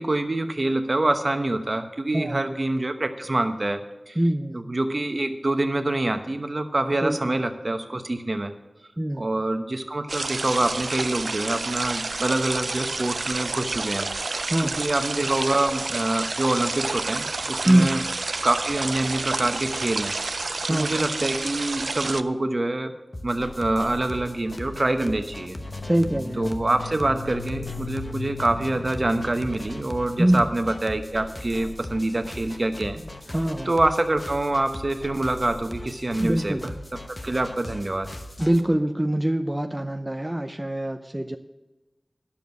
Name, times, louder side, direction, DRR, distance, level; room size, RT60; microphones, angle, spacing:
voice 1, 0.0-3.8 4.1-4.2 4.5-8.5 9.2-14.1 14.8-18.0 18.4-22.9 23.2-25.6 26.4-33.0 33.6-36.7 37.2-38.1, right 2 dB, 50° right, 7 dB, 1.0 m, -26 dB
voice 2, 4.2-4.6 7.0-7.3 9.0-9.3 14.5-14.8 17.7-17.9 20.7-21.0 25.8-26.5 30.2-30.5 33.3-33.7 36.2-36.6 38.4-41.4, right 1 dB, 25° right, 6 dB, 0.6 m, -23 dB
sound 1, 10.1-22.2, right 3 dB, 85° right, 0.4 m, -29 dB
sound 2, 23.1-38.6, left 1 dB, 40° left, 1.0 m, -39 dB
sound 3, 25.4-30.2, left 4 dB, 85° left, 0.9 m, -38 dB
10.0 x 7.1 x 6.3 m, 1.1 s
wide cardioid pair, 50°, 0 cm